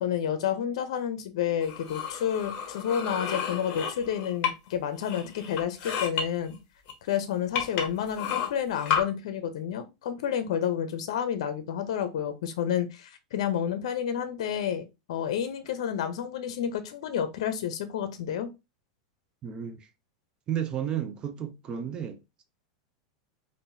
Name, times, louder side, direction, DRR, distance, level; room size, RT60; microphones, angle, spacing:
voice 1, 0.0-6.6 7.0-18.5, left 9 dB, 75° left, 0.6 m, -30 dB
sound 1, 1.6-4.7 5.0-6.2 6.9-7.0 7.5-9.0, left 7 dB, 45° left, 1.0 m, -31 dB
voice 2, 19.4-19.9 20.5-22.2, right 9 dB, 25° right, 0.5 m, -32 dB
3.7 x 2.5 x 2.6 m
supercardioid pair, 140°, 3 cm